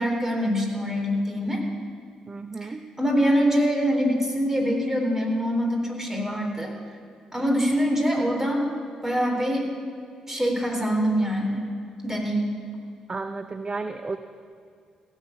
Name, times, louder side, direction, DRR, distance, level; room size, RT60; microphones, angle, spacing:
voice 1, 0.0-1.6 2.6-2.7 3.0-6.7 7.3-8.7 9.0-9.7 10.3-11.6 12.0-12.6, equal, 15° right, 1 dB, 3.8 m, -24 dB
voice 2, 2.3-2.8 13.1-14.2, right 3 dB, 30° right, 9 dB, 0.7 m, -33 dB
15.5 x 7.3 x 8.2 m, 2.3 s
hypercardioid pair, 40°, 3 cm